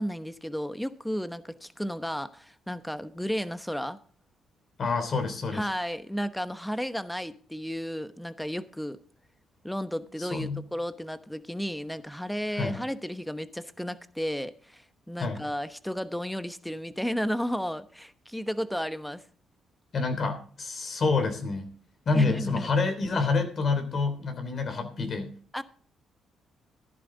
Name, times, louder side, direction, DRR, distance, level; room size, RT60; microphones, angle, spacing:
voice 1, 0.0-4.0 5.5-9.0 9.6-19.2 22.1-22.7 25.5-25.6, equal, 5° left, 1.0 m, -33 dB
voice 2, 4.8-5.7 10.2-10.6 12.5-12.8 15.2-15.4 19.9-21.7 22.0-25.4, left 4 dB, 50° left, 3.3 m, -28 dB
14.0 x 11.0 x 3.9 m
cardioid pair, 90°, 0 cm